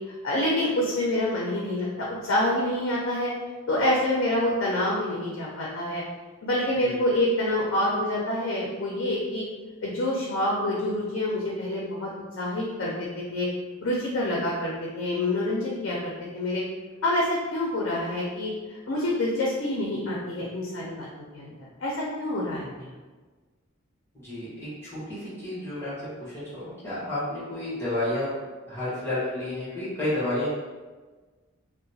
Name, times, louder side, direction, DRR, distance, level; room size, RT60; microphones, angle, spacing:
voice 1, 0.2-3.3 3.7-6.0 6.4-9.4 9.8-12.1 12.4-13.5 13.8-16.6 17.0-18.5 18.9-21.1 21.3-21.5 21.8-22.9, left 1 dB, 65° left, -4 dB, 0.5 m, -27 dB
voice 2, 24.2-25.0 25.4-25.9 26.5-28.3 28.7-30.5, left 1 dB, 10° left, -11 dB, 1.1 m, -30 dB
2.9 x 2.0 x 2.7 m, 1.3 s
head